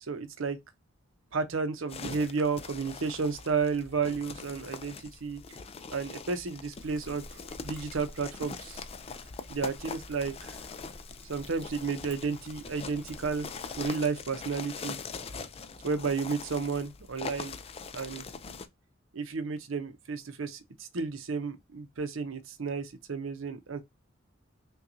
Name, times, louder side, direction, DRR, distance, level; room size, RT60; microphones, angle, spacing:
voice 1, 0.0-0.6 1.3-5.4 5.9-8.8 9.5-10.6 11.3-13.5 13.8-15.0 15.8-17.6 17.9-18.3 19.1-23.8, right 5 dB, 80° right, 0.7 m, -32 dB
sound 1, 1.9-18.7, left 5 dB, 30° left, 0.4 m, -43 dB
Trickle dribble, 6.7-13.9, equal, 5° left, 1.0 m, -50 dB
5.6 x 2.3 x 2.6 m
head